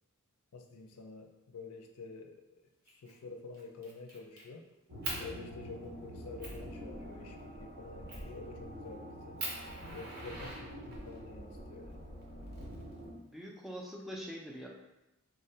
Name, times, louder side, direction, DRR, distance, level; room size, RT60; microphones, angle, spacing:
voice 1, 0.5-2.6 3.0-4.6 5.2-9.4 9.9-12.1, left 4 dB, 80° left, 4 dB, 0.4 m, -48 dB
Fire, 2.9-3.1 3.5-4.4 5.0-5.2 5.8-5.9 6.4-6.6 8.1-8.4 8.9-9.0 9.4-11.2 12.2-13.2, right 2 dB, 45° right, 0.7 m, -42 dB
sound 1, 4.9-13.1, equal, 80° right, 1.1 m, -46 dB
voice 2, 13.1-14.7, equal, ahead, -2 dB, 0.3 m, -44 dB
3.5 x 2.1 x 2.7 m, 0.96 s
head